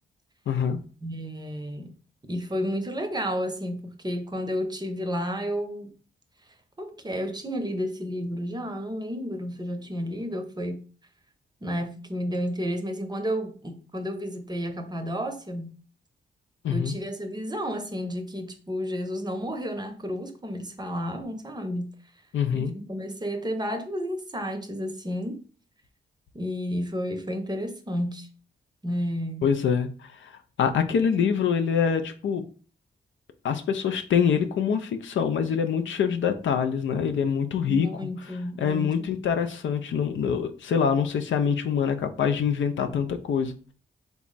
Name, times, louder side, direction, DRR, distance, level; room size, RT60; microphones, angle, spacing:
voice 1, 0.5-0.8 16.6-16.9 22.3-22.7 29.4-30.3 30.6-32.4 33.4-38.1 38.6-43.5, left 7 dB, 70° left, 0.5 m, -25 dB
voice 2, 1.0-1.9 2.3-5.9 6.8-10.8 11.6-15.7 16.7-21.9 22.5-25.4 26.3-28.3 28.8-29.5 37.7-39.0, equal, 20° right, 0.7 m, -31 dB
3.4 x 2.0 x 3.9 m
supercardioid pair, 50°, 20 cm